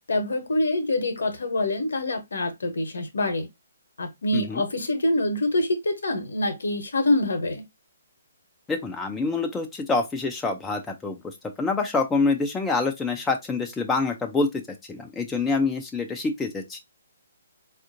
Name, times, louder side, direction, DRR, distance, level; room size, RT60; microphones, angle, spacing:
voice 1, 0.1-3.5 4.0-7.6, left 1 dB, 65° left, 0.9 m, -25 dB
voice 2, 8.7-11.2 11.6-14.5 14.9-16.8, left 3 dB, 10° left, 0.5 m, -26 dB
4.2 x 2.4 x 2.6 m
figure-of-eight pair, 130°, 0 cm